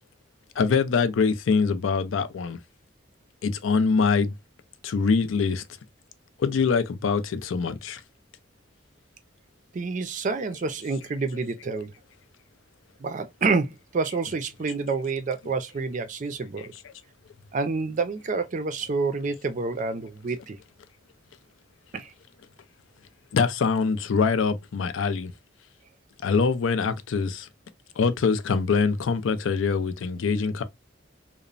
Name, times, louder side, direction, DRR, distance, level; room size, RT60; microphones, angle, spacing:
voice 1, 0.6-2.6 3.4-4.3 4.8-5.6 6.4-8.0 11.3-11.5 16.6-16.8 23.3-25.3 26.2-27.5 28.0-30.6, left 5 dB, 80° left, 0.4 m, -24 dB
voice 2, 9.7-11.9 13.0-16.7 17.5-20.6 21.9-22.1, right 4 dB, 40° right, 0.4 m, -28 dB
2.9 x 2.0 x 2.4 m
head